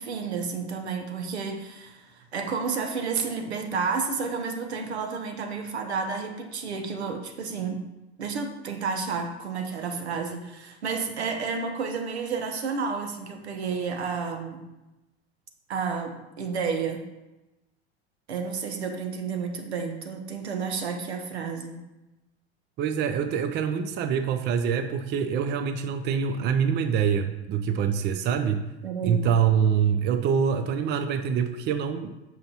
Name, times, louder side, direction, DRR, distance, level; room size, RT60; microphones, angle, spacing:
voice 1, 0.0-7.9 8.2-14.7 15.7-17.1 18.3-21.8 28.8-29.3, right 5 dB, 80° right, 5 dB, 1.0 m, -31 dB
voice 2, 22.8-28.7 29.0-32.1, right 7 dB, 35° right, 8 dB, 0.6 m, -25 dB
7.5 x 5.8 x 2.9 m, 1.0 s
hypercardioid pair, 90°, 32 cm